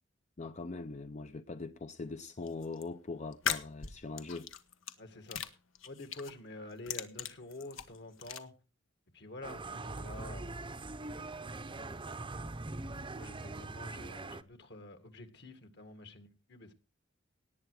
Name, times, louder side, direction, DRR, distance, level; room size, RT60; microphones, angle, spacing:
voice 1, 0.4-4.5, left 3 dB, 35° left, 0.6 m, -41 dB
sound 1, 2.4-2.8 3.3-4.9 5.3-6.3 6.7-8.4, left 8 dB, 85° left, 1.3 m, -38 dB
voice 2, 5.0-5.4 5.8-8.5 9.1-10.6 11.7-12.2 13.2-16.7, left 2 dB, 60° left, 2.1 m, -48 dB
sound 2, 9.4-14.4, right 2 dB, 25° right, 0.7 m, -42 dB
18.0 x 9.0 x 4.8 m
head